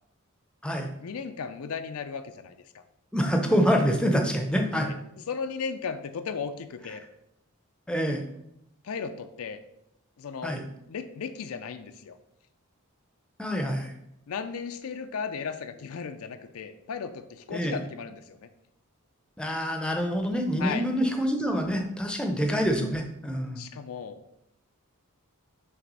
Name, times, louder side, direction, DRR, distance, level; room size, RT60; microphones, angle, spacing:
voice 1, 1.0-2.8 4.7-5.0 5.3-7.0 8.8-9.6 10.2-10.6 10.9-12.2 14.3-18.5 20.6-20.9 23.6-24.2, left 6 dB, 75° left, 9 dB, 0.4 m, -36 dB
voice 2, 3.1-4.9 7.9-8.2 10.4-10.6 13.4-13.9 17.5-17.8 19.4-23.6, equal, 5° left, 3 dB, 0.6 m, -26 dB
5.9 x 3.3 x 5.3 m, 0.80 s
head